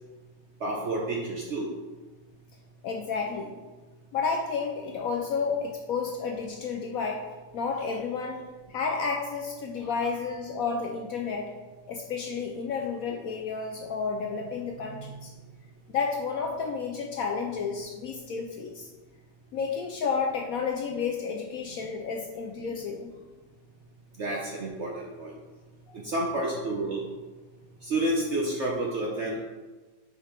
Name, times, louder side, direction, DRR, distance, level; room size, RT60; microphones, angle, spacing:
voice 1, 0.6-1.7 9.8-9.9 24.2-25.3 25.9-27.0 27.8-29.4, right 1 dB, 60° right, -2 dB, 0.7 m, -30 dB
voice 2, 2.8-3.5 4.1-7.2 7.5-8.4 8.7-11.5 11.9-15.3 15.9-18.9 19.5-23.1 25.9-26.0, left 5 dB, 70° left, 2 dB, 0.8 m, -31 dB
4.9 x 4.6 x 4.4 m, 1.2 s
omnidirectional pair, 1.9 m